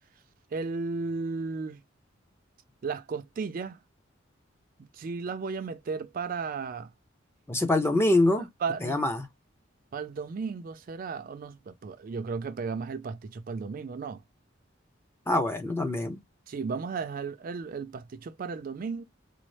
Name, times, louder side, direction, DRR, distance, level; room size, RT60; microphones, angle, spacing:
voice 1, 0.5-1.8 2.8-3.8 5.0-6.9 8.6-9.0 9.9-14.2 16.5-19.0, right 4 dB, 45° right, 0.4 m, -34 dB
voice 2, 7.5-8.5 8.8-9.3 15.3-16.2, left 2 dB, 10° left, 0.5 m, -25 dB
3.9 x 2.0 x 3.1 m
head